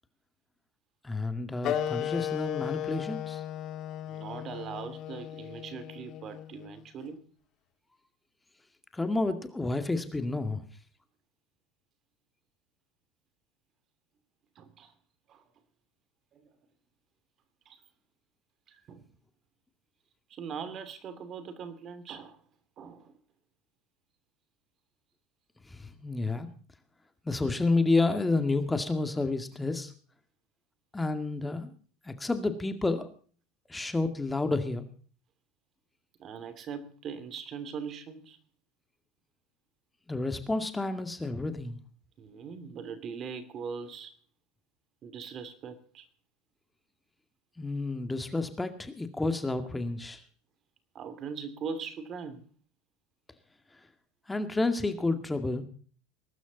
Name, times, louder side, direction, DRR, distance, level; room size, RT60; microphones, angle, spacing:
voice 1, 1.0-3.4 8.9-10.6 25.7-26.5 27.2-29.9 30.9-31.7 32.0-33.1 33.7-34.9 40.1-41.8 47.6-50.2 54.3-55.6, left 3 dB, 10° left, 8 dB, 2.1 m, -30 dB
Wind instrument woodwind instrument, 1.6-6.8, left 11 dB, 50° left, 2.4 m, -35 dB
voice 2, 4.0-7.2 14.6-14.9 15.3-15.4 16.3-16.4 17.7-17.8 18.7-19.0 20.3-22.4 22.8-23.1 36.2-38.4 42.2-44.1 45.0-46.0 50.9-52.4, right 6 dB, 40° right, 12 dB, 2.7 m, -41 dB
21.5 x 12.5 x 4.1 m, 0.43 s
supercardioid pair, 105°, 0 cm